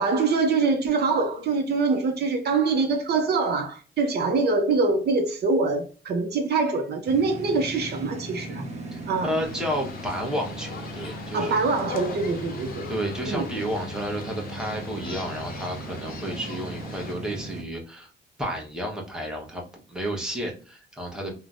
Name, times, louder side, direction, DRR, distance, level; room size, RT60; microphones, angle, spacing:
voice 1, 0.0-8.7 9.1-9.3 11.3-12.9 13.2-13.5, right 4 dB, 55° right, 0.5 m, -24 dB
sound 1, 7.0-17.6, right 2 dB, 35° right, 0.9 m, -38 dB
voice 2, 8.9-11.5 12.9-18.1 18.4-21.3, equal, 5° right, 1.0 m, -31 dB
sound 2, 9.4-17.1, left 6 dB, 50° left, 0.6 m, -41 dB
3.2 x 2.1 x 2.5 m
cardioid pair, 90°, 20 cm